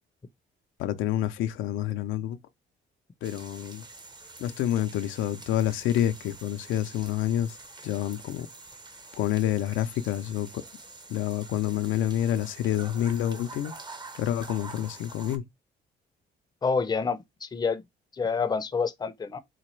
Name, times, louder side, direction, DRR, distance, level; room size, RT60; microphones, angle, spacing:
voice 1, 0.8-2.4 3.2-3.8 4.4-7.6 7.8-8.5 9.1-10.6 11.1-13.7 14.2-15.4, left 11 dB, 85° left, 0.4 m, -28 dB
sound 1, 3.2-15.4, right 3 dB, 20° right, 0.7 m, -46 dB
voice 2, 16.6-17.8 18.2-19.4, left 5 dB, 20° left, 0.5 m, -28 dB
4.0 x 2.2 x 3.1 m
cardioid pair, 90°, 20 cm